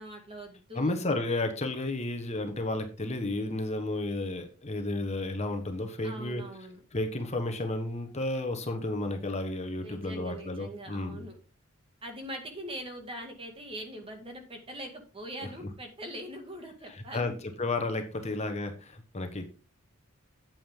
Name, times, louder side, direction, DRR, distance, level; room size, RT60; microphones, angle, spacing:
voice 1, 0.0-0.9 6.0-6.8 9.8-11.4 12.0-17.4, right 1 dB, 25° right, 4 dB, 2.1 m, -42 dB
voice 2, 0.7-6.4 6.9-11.3 16.9-17.3 17.6-19.5, left 2 dB, 30° left, 6 dB, 1.2 m, -32 dB
8.9 x 8.6 x 3.7 m, 0.34 s
head